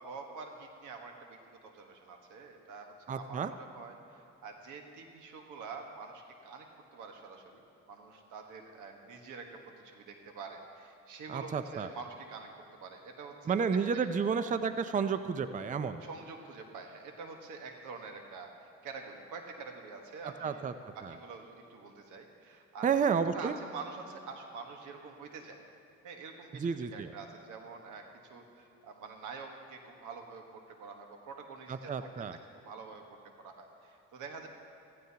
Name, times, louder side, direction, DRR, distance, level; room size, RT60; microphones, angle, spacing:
voice 1, 0.0-14.0 16.0-22.9 23.3-25.6 26.0-33.0 33.4-34.5, right 4 dB, 85° right, 3 dB, 1.4 m, -47 dB
voice 2, 3.1-3.5 11.3-11.9 13.5-16.0 20.4-21.1 22.8-23.5 26.6-27.1 31.7-32.4, right 6 dB, 25° right, 11 dB, 0.5 m, -31 dB
15.5 x 14.5 x 2.9 m, 2.9 s
cardioid pair, 90°, 30 cm